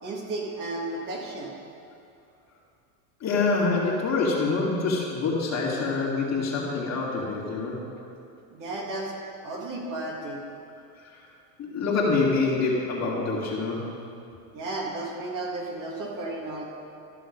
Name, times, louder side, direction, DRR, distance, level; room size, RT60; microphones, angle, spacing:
voice 1, 0.0-1.5 8.5-9.1 9.4-10.4 14.5-16.6, right 2 dB, 40° right, -2 dB, 2.0 m, -33 dB
voice 2, 3.2-7.8 11.0-11.2 11.6-13.9, left 3 dB, 35° left, -4 dB, 2.3 m, -26 dB
13.0 x 6.2 x 5.3 m, 2.5 s
supercardioid pair, 115°, 47 cm